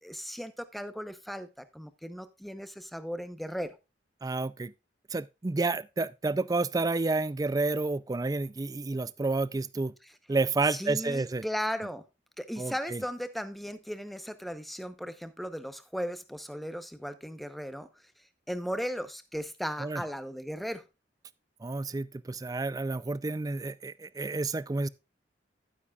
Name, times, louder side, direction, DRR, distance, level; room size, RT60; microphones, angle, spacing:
voice 1, 0.0-3.8 10.7-12.0 12.4-17.9 18.5-20.8, equal, ahead, 0.8 m, -36 dB
voice 2, 4.2-4.7 5.1-9.9 10.3-11.4 12.6-13.0 19.8-20.0 21.6-24.9, right 3 dB, 20° right, 0.4 m, -30 dB
11.0 x 9.6 x 2.4 m
head